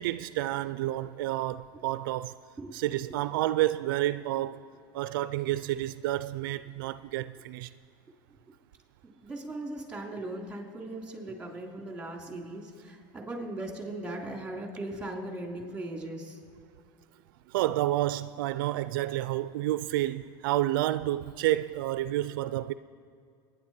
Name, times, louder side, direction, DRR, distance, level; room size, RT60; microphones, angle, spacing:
voice 1, 0.0-2.3 2.7-4.7 4.9-7.7 17.5-22.7, right 15 dB, 85° right, 0.4 m, -30 dB
voice 2, 9.0-16.4, right 2 dB, 10° right, 2.9 m, -38 dB
24.5 x 9.8 x 4.3 m
supercardioid pair, 115°, 11 cm